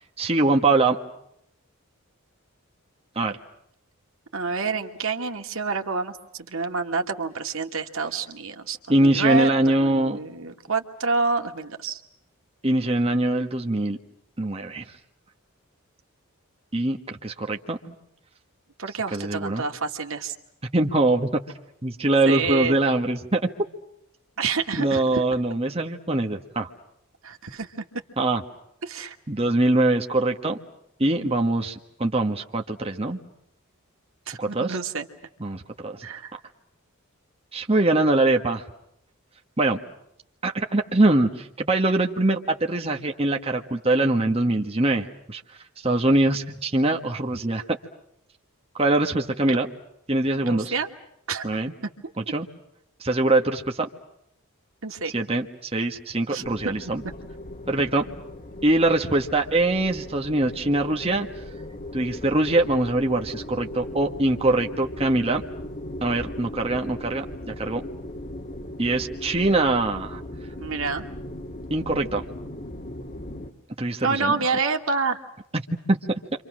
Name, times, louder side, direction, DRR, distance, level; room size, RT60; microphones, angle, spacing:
voice 1, 0.2-1.0 3.1-3.4 8.9-10.2 12.6-14.0 14.4-14.8 16.7-17.9 19.1-19.6 20.7-21.4 21.8-23.5 24.8-26.7 28.2-28.4 29.3-30.6 31.0-33.2 34.4-34.8 35.4-36.4 37.5-38.6 39.6-39.8 40.4-45.4 45.8-47.8 48.7-49.7 50.1-50.7 51.4-51.7 52.3-52.5 53.0-53.9 55.1-57.0 57.7-58.1 58.6-61.3 61.9-65.4 66.0-67.8 68.8-70.2 71.7-72.2 73.8-74.3 75.9-76.0, right 2 dB, 25° right, 2 dB, 1.5 m, -23 dB
voice 2, 4.3-12.0 18.8-20.4 22.3-22.8 24.4-25.2 27.2-27.7 28.8-29.2 34.3-35.1 36.0-36.3 49.5-49.6 50.4-50.9 51.3-51.6 52.0-52.3 54.8-55.1 56.3-56.4 70.6-71.1 74.0-75.2, right 4 dB, 65° right, 5 dB, 2.2 m, -28 dB
sound 1, 56.4-73.5, left 1 dB, 40° left, 2.0 m, -38 dB
30.0 x 26.0 x 6.3 m, 0.77 s
head